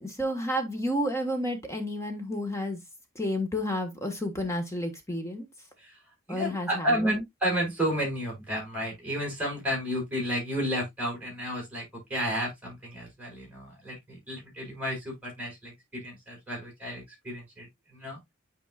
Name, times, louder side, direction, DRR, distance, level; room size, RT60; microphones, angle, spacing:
voice 1, 0.0-2.8 3.1-5.5 6.3-7.2, equal, 15° left, 1.3 m, -31 dB
voice 2, 6.3-18.2, equal, 5° right, 4.4 m, -32 dB
9.1 x 4.7 x 2.3 m
head